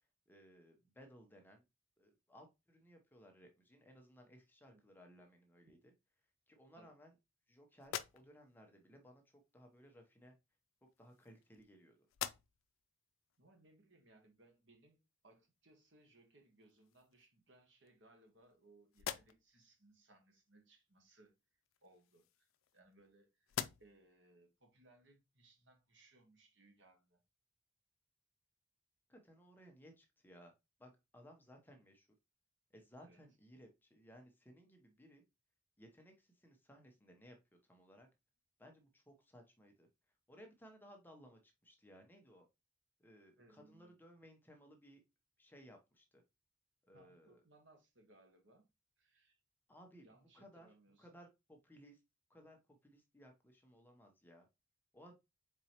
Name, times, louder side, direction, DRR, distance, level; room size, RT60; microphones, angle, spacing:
voice 1, 0.3-1.6 2.0-5.9 6.5-7.1 7.5-10.3 11.0-12.0 29.1-30.5 30.8-32.1 32.7-35.2 35.8-37.4 37.6-38.1 38.6-39.9 40.3-42.5 43.0-45.0 45.4-46.2 46.9-47.4 49.7-50.1 50.3-52.0 52.3-54.5 54.9-55.2, equal, 10° left, 0.8 m, -61 dB
sound 1, 7.8-8.6 9.8-9.9 10.9-11.7 12.1-12.8 13.3-13.4 16.1-16.2 16.6-17.3 17.9-18.6 18.9-19.6 21.6-23.1 23.5-24.1, left 10 dB, 90° left, 0.4 m, -47 dB
voice 2, 13.4-21.3 21.8-27.2 33.0-33.2 43.4-43.9 46.9-48.6 49.0-49.4 50.0-51.2, right 2 dB, 65° right, 1.4 m, -67 dB
4.5 x 4.1 x 2.9 m
head